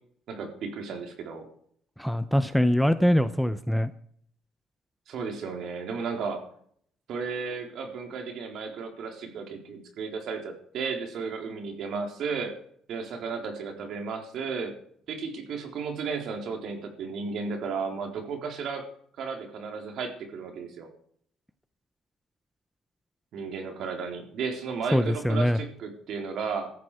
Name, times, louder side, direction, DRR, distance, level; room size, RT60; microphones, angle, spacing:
voice 1, 0.3-1.5 5.1-6.4 7.1-12.5 12.9-14.7 15.1-18.8 19.2-20.9 23.3-26.7, right 5 dB, 60° right, 3 dB, 4.0 m, -34 dB
voice 2, 2.0-3.9 24.9-25.6, equal, ahead, 11 dB, 0.7 m, -23 dB
17.0 x 14.0 x 5.0 m, 0.62 s
cardioid pair, 140°, 0 cm